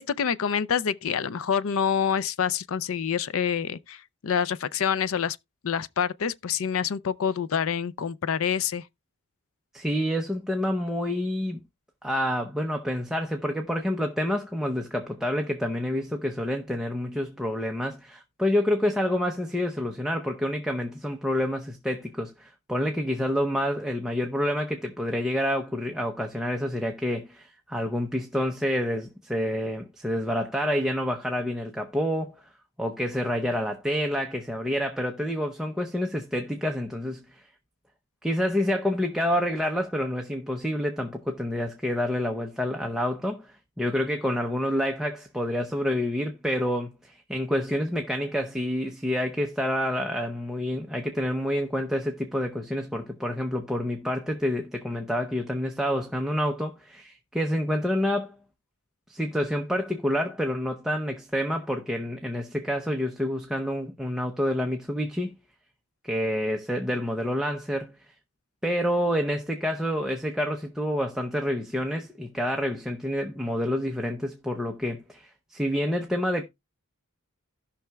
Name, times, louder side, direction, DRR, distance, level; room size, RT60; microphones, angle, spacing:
voice 1, 0.0-5.4 5.6-8.8, left 7 dB, 65° left, 0.4 m, -27 dB
voice 2, 9.7-11.6 12.0-32.4 32.8-37.5 38.2-58.3 59.1-65.3 66.0-68.0 68.6-76.4, equal, ahead, 0.6 m, -28 dB
16.5 x 5.7 x 2.3 m
head